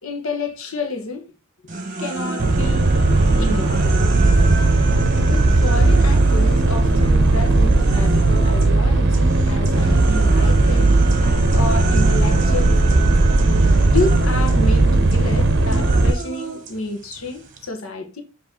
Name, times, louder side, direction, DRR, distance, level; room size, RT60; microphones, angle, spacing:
voice 1, 0.0-1.3 2.0-2.9 3.4-3.8 5.3-11.0 11.5-13.1 13.9-18.2, left 2 dB, 75° left, 1.3 m, -29 dB
sound 1, 1.7-8.8 9.1-17.7, right 3 dB, 35° right, 1.1 m, -31 dB
sound 2, 2.4-16.1, right 2 dB, 50° right, 0.7 m, -16 dB
7.3 x 3.1 x 4.3 m
head